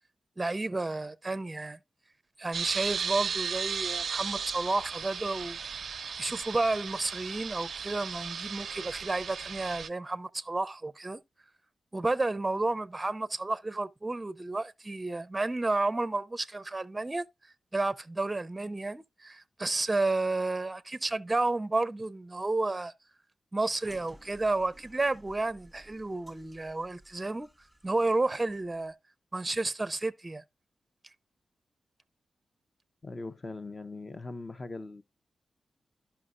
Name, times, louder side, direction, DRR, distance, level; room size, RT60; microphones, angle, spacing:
voice 1, 0.4-1.8 2.4-5.6 6.2-11.2 11.9-17.3 17.7-22.9 23.5-27.5 27.8-28.9 29.3-30.4, right 2 dB, 20° right, 0.6 m, -31 dB
sound 1, 2.5-9.9, right 6 dB, 70° right, 0.4 m, -35 dB
sound 2, 23.8-28.9, equal, 5° left, 1.5 m, -57 dB
voice 2, 33.0-35.0, left 3 dB, 35° left, 0.8 m, -40 dB
12.0 x 5.7 x 2.5 m
wide cardioid pair, 95°, 0 cm